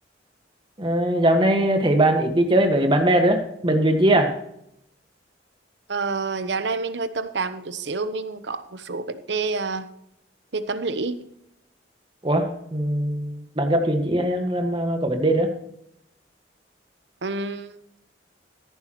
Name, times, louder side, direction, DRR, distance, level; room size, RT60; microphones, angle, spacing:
voice 1, 0.8-4.4 12.2-15.5, right 1 dB, 25° right, 4 dB, 1.6 m, -21 dB
voice 2, 5.9-9.9 10.5-11.2 17.2-17.8, right 3 dB, 70° right, 12 dB, 0.9 m, -28 dB
14.0 x 11.0 x 3.1 m, 0.75 s
head